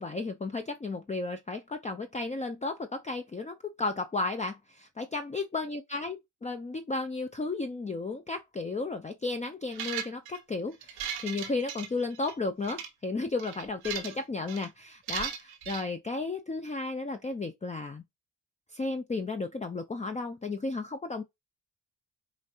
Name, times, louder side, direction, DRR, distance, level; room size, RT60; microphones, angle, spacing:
voice 1, 0.0-18.0 18.7-21.2, left 3 dB, 15° left, 0.5 m, -34 dB
sound 1, 9.7-10.4 10.8-12.3 12.6-12.9 13.4-14.2 14.5-14.7 15.1-15.8, right 8 dB, 90° right, 0.9 m, -37 dB
5.0 x 2.5 x 2.8 m
supercardioid pair, 50°, 43 cm